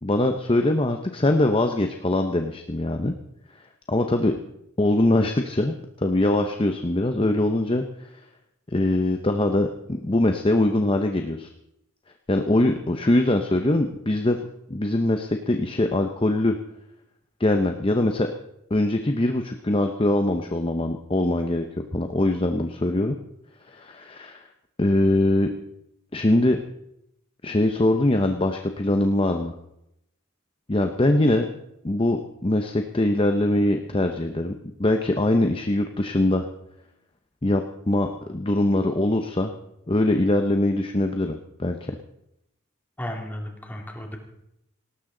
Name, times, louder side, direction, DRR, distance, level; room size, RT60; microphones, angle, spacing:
voice 1, 0.0-3.1 3.9-4.3 4.8-7.8 8.7-11.5 12.3-14.4 14.7-16.6 17.4-18.3 18.7-21.7 21.9-23.2 23.7-24.5 24.8-25.5 26.1-26.6 27.4-29.5 30.7-31.5 31.8-34.5 34.8-36.5 37.4-39.5 39.9-42.0, left 1 dB, 25° left, 5 dB, 0.7 m, -22 dB
voice 2, 43.0-44.2, left 1 dB, 10° left, 1 dB, 2.3 m, -34 dB
18.5 x 18.0 x 3.9 m, 0.82 s
head